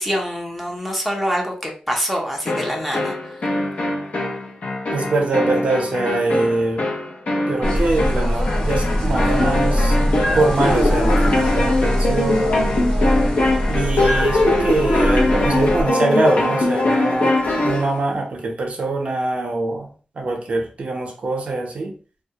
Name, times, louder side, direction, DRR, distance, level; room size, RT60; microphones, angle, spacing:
voice 1, 0.0-3.2, equal, 5° left, -1 dB, 0.6 m, -25 dB
sound 1, 2.5-17.9, left 2 dB, 60° left, 0.6 m, -21 dB
voice 2, 4.9-6.9 7.5-10.0 10.3-12.6 13.7-17.3 17.6-19.9 20.2-21.9, right 2 dB, 55° right, 1 dB, 0.6 m, -23 dB
sound 2, 7.6-15.8, equal, 40° left, 1.2 m, -22 dB
2.2 x 2.0 x 2.7 m, 0.38 s
wide cardioid pair, 120°, 3 cm